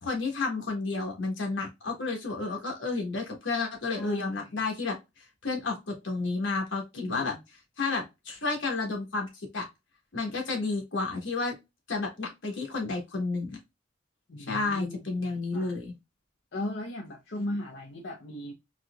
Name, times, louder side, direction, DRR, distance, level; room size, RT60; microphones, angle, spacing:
voice 1, 0.0-4.9 5.4-7.3 7.8-9.3 9.5-9.7 10.1-11.5 11.9-13.6 14.5-15.9, left 3 dB, 80° left, 1.3 m, -31 dB
voice 2, 3.8-4.6 7.0-7.4 14.3-15.8 16.5-18.5, left 1 dB, 60° left, 0.6 m, -37 dB
4.1 x 2.8 x 2.3 m
head